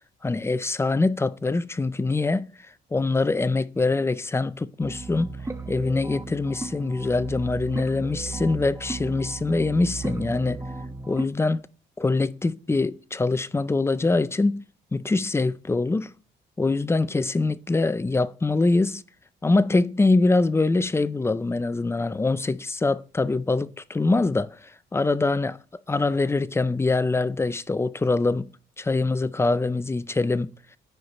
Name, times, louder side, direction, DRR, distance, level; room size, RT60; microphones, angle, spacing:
voice 1, 0.2-2.5 2.9-5.4 5.7-10.6 11.1-11.6 12.0-14.6 14.9-16.1 16.6-19.0 19.4-25.6 25.9-28.5 28.8-30.5, left 3 dB, 15° left, 0.4 m, -24 dB
sound 1, 4.8-11.2, right 3 dB, 15° right, 0.9 m, -35 dB
13.5 x 4.6 x 3.0 m
cardioid pair, 90°, 20 cm